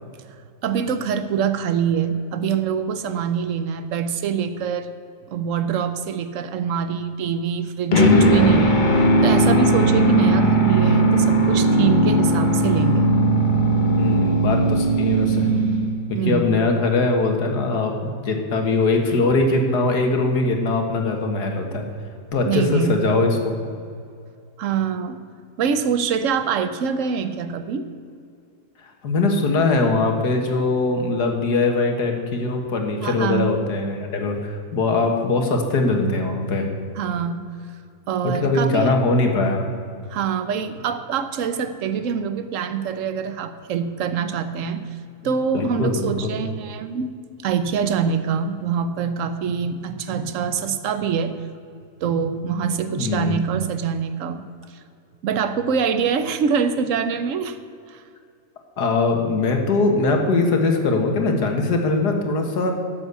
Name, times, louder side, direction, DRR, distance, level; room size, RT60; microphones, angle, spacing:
voice 1, 0.6-4.9 5.3-8.8 9.2-13.1 16.1-16.6 22.5-23.0 24.6-25.2 25.6-27.9 33.0-33.5 37.0-37.5 38.1-39.0 40.1-44.8 45.2-47.2 47.4-51.3 52.0-54.4 55.2-57.6 57.9-58.0, right 7 dB, 55° right, 11 dB, 1.0 m, -24 dB
sound 1, 7.9-16.2, right 1 dB, 30° left, 1.1 m, -18 dB
voice 2, 14.0-15.5 16.1-21.9 22.3-23.6 29.0-36.7 38.2-39.7 45.5-46.3 53.0-53.4 58.8-62.7, left 3 dB, 70° left, 3 dB, 2.1 m, -21 dB
12.0 x 7.3 x 8.2 m, 2.4 s
omnidirectional pair, 1.8 m